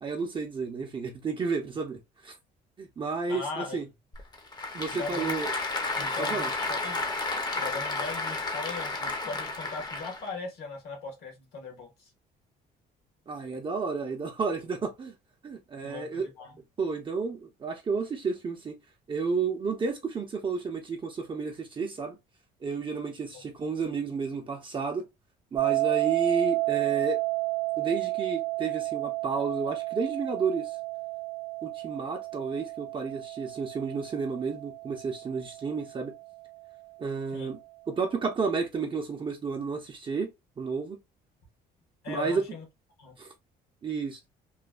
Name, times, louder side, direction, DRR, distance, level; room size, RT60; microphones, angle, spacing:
voice 1, 0.0-2.3 2.8-3.8 4.7-5.5 6.2-6.5 13.3-15.1 15.4-16.3 16.8-18.7 19.1-22.2 22.6-25.0 25.5-27.2 27.8-30.8 31.6-36.1 37.0-37.6 37.9-40.3 40.6-41.0 42.1-42.4 43.2-43.3 43.8-44.2, right 4 dB, 30° right, 0.6 m, -31 dB
voice 2, 3.3-3.8 4.8-5.5 5.9-7.1 7.6-12.1 15.8-16.6 23.3-23.4 37.3-37.5 42.0-42.6 43.0-43.2, left 3 dB, 70° left, 1.4 m, -39 dB
Applause / Crowd, 4.1-10.3, left 3 dB, 25° left, 0.7 m, -32 dB
sound 1, 25.6-36.5, right 23 dB, 70° right, 0.4 m, -31 dB
3.0 x 2.2 x 2.3 m
cardioid pair, 110°, 17 cm